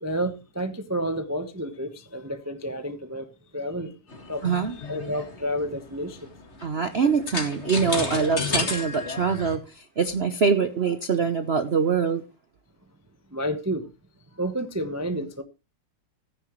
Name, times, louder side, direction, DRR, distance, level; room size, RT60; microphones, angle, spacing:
voice 1, 0.0-3.3 3.5-3.9 4.2-6.3 13.3-13.9 14.3-15.4, equal, 20° right, 0.4 m, -30 dB
sound 1, 4.1-9.6, left 3 dB, 30° left, 2.2 m, -32 dB
voice 2, 4.4-4.7 6.6-12.2, right 5 dB, 90° right, 0.5 m, -24 dB
14.5 x 9.9 x 3.1 m
omnidirectional pair, 2.4 m